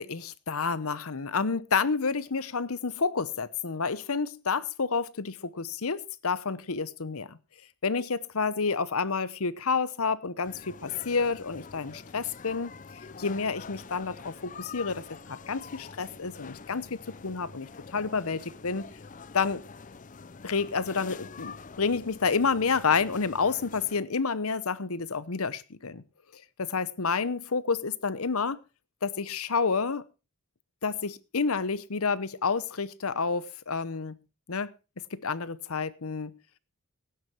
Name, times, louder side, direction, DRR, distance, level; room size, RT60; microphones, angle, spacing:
voice 1, 0.0-7.4 7.8-12.7 13.2-15.2 15.5-18.9 19.3-19.6 20.4-26.0 26.6-28.6 29.0-30.0 30.8-34.2 34.5-34.7 35.1-36.4, left 5 dB, 75° left, 0.9 m, -29 dB
sound 1, 10.4-24.0, left 5 dB, 35° left, 0.6 m, -46 dB
17.0 x 9.7 x 4.5 m
head